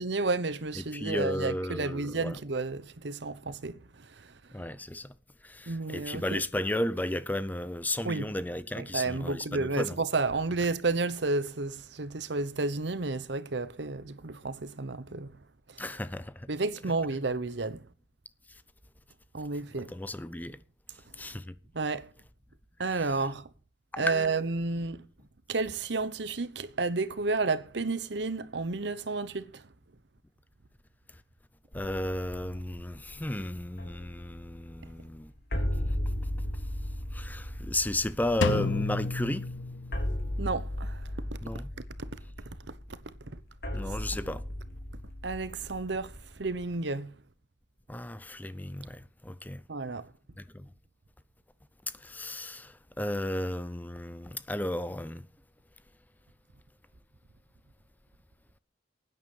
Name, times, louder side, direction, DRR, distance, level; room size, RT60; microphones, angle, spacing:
voice 1, 0.0-4.3 5.7-6.4 8.0-8.3 8.7-15.4 15.7-16.0 16.5-17.8 19.3-19.9 21.7-22.1 22.8-23.5 24.0-25.0 25.5-29.6 40.4-41.1 41.5-41.6 42.0-42.1 43.3-43.4 45.2-47.1 49.7-50.1, right 3 dB, 65° right, 0.9 m, -31 dB
voice 2, 0.9-2.4 4.5-5.1 5.4-10.0 15.8-16.5 19.9-20.6 21.2-21.5 23.9-24.3 31.7-35.3 37.1-39.5 41.4-41.7 43.7-44.4 47.9-49.6 50.4-50.7 52.0-55.2, left 1 dB, 10° left, 0.5 m, -34 dB
sound 1, 31.7-46.6, equal, 55° left, 3.5 m, -37 dB
Drum, 38.4-40.3, left 4 dB, 75° left, 0.6 m, -31 dB
11.5 x 9.5 x 7.1 m
head